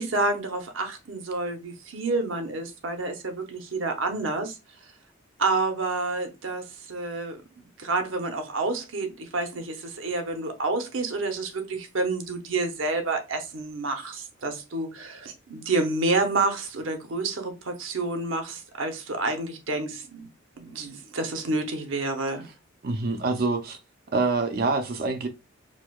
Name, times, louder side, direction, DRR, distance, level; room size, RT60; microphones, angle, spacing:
voice 1, 0.0-4.5 5.4-7.4 7.8-20.3 20.6-22.5, right 3 dB, 75° right, 0.8 m, -29 dB
voice 2, 22.8-23.8 24.1-25.3, right 3 dB, 50° right, 0.5 m, -25 dB
4.7 x 2.1 x 2.3 m
head